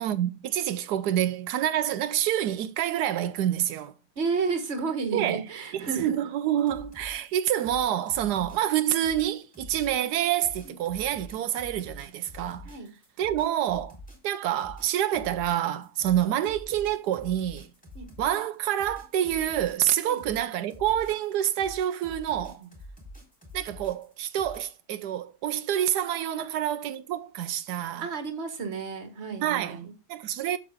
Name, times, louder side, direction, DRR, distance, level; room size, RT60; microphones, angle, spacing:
voice 1, 0.0-3.9 5.1-5.4 5.7-12.7 13.2-14.0 14.2-17.7 18.2-22.6 23.5-28.1 29.4-29.8 30.1-30.6, right 11 dB, 90° right, 1.2 m, -27 dB
voice 2, 4.2-6.2 10.6-10.7 12.6-12.9 17.9-18.1 20.1-20.2 28.0-29.9, right 5 dB, 45° right, 1.6 m, -31 dB
sound 1, 6.6-24.6, left 1 dB, 5° left, 3.5 m, -47 dB
8.5 x 6.9 x 3.5 m
omnidirectional pair, 1.7 m